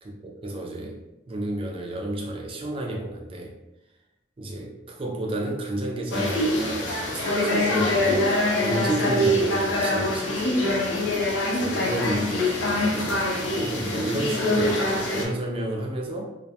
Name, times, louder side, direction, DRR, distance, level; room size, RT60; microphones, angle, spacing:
voice 1, 0.0-3.6 4.4-8.3 8.6-10.6 11.5-16.2, right 1 dB, 30° right, 0 dB, 0.4 m, -31 dB
sound 1, 6.1-15.3, left 1 dB, 80° left, 0.6 m, -24 dB
2.4 x 2.2 x 2.7 m, 0.94 s
head